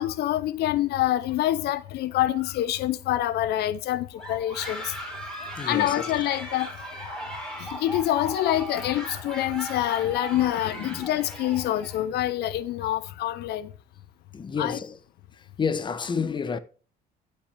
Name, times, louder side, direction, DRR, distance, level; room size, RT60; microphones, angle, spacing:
voice 1, 0.0-4.9 5.7-6.7 7.7-13.7 14.6-14.8, left 13 dB, 75° left, 0.6 m, -26 dB
sound 1, 4.2-12.0, equal, 5° left, 4.7 m, -37 dB
voice 2, 5.6-6.1 10.7-11.1 14.3-15.0 15.6-16.6, left 5 dB, 30° left, 0.9 m, -30 dB
11.5 x 8.6 x 3.3 m
cardioid pair, 110°, 17 cm